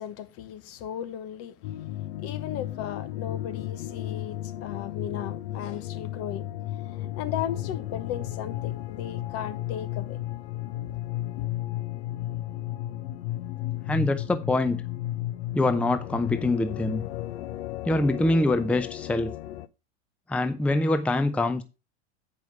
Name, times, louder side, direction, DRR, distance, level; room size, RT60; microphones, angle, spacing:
voice 1, 0.0-6.5 7.0-10.2, left 10 dB, 45° left, 1.1 m, -36 dB
sound 1, 1.6-19.7, left 14 dB, 65° left, 0.7 m, -34 dB
voice 2, 13.9-14.8 15.5-17.0 17.8-19.3 20.3-21.6, left 2 dB, 5° left, 0.6 m, -24 dB
9.3 x 5.3 x 4.6 m
hypercardioid pair, 105°, 33 cm